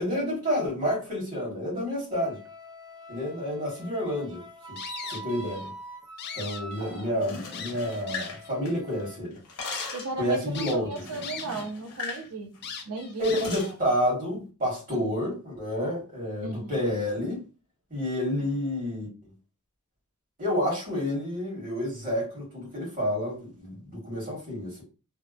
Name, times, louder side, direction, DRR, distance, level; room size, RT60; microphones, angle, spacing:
voice 1, 0.0-2.4 3.1-4.4 4.7-5.7 6.3-9.4 10.2-10.9 13.2-17.4 17.9-19.1 20.4-24.8, equal, 40° right, 1.4 m, -29 dB
Wind instrument woodwind instrument, 2.1-9.2, right 1 dB, 20° right, 0.5 m, -45 dB
sound 1, 4.8-5.7 6.0-7.1 7.5-8.5 9.1-9.2 9.6-9.9 10.5-11.7 12.0-12.1 12.6-13.7, left 6 dB, 50° left, 0.4 m, -39 dB
voice 2, 6.8-7.1 9.9-12.5 12.9-13.7 14.9-15.2 16.4-16.8 18.4-18.5, right 3 dB, 85° right, 0.6 m, -36 dB
sound 2, 7.1-9.0 9.3-10.2 11.0-12.3 12.5-12.7 13.2-13.7, left 4 dB, 75° left, 0.8 m, -39 dB
2.7 x 2.1 x 2.4 m
head